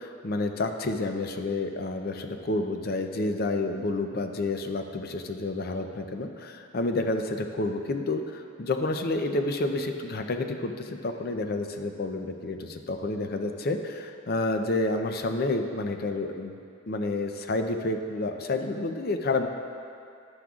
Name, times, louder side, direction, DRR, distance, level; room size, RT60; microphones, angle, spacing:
voice 1, 0.0-16.6 16.9-19.5, left 2 dB, 50° left, 6 dB, 0.6 m, -29 dB
12.0 x 9.7 x 2.4 m, 2.5 s
head